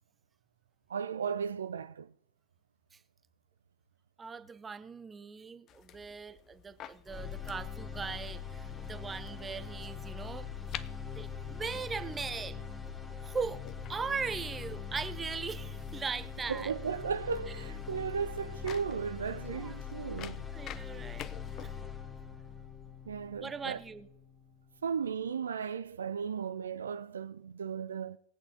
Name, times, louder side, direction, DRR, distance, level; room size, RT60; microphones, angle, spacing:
voice 1, 0.9-2.1 16.5-20.5 21.6-21.7 23.1-23.8 24.8-28.2, right 6 dB, 70° right, 0.3 m, -35 dB
voice 2, 4.2-10.5 11.1-12.6 13.2-13.6 13.9-16.7 19.4-19.7 20.5-21.4 23.4-24.1, right 5 dB, 15° right, 0.8 m, -39 dB
sound 1, 5.7-21.8, left 10 dB, 30° left, 0.5 m, -51 dB
sound 2, 7.1-25.1, left 7 dB, 15° left, 1.5 m, -42 dB
21.0 x 8.5 x 2.9 m
figure-of-eight pair, 90°, 0 cm